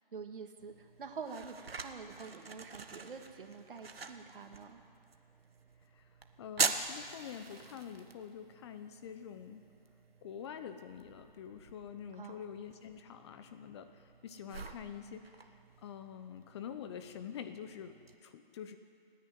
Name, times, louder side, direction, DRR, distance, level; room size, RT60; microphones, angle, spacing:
voice 1, 0.1-4.8 12.1-12.5, right 5 dB, 65° right, 5 dB, 2.4 m, -47 dB
sound 1, 0.6-18.1, right 4 dB, 85° right, 1.6 m, -44 dB
voice 2, 6.4-9.6 10.2-18.8, left 8 dB, 30° left, 9 dB, 1.0 m, -46 dB
29.5 x 10.0 x 9.5 m, 2.4 s
hypercardioid pair, 150°, 29 cm